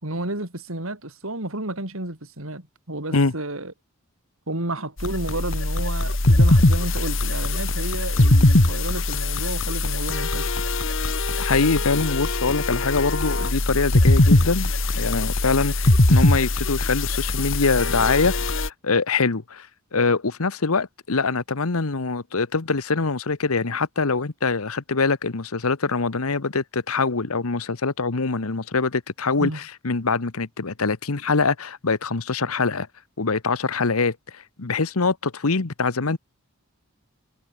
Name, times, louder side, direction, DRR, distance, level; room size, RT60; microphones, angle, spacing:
voice 1, 0.0-3.7 4.5-10.5 29.4-29.6, right 1 dB, 70° right, 4.4 m, -31 dB
sound 1, 5.0-18.7, left 2 dB, 60° left, 2.1 m, -21 dB
voice 2, 11.4-19.7 19.9-32.9 33.2-36.2, left 4 dB, 80° left, 1.1 m, -24 dB
head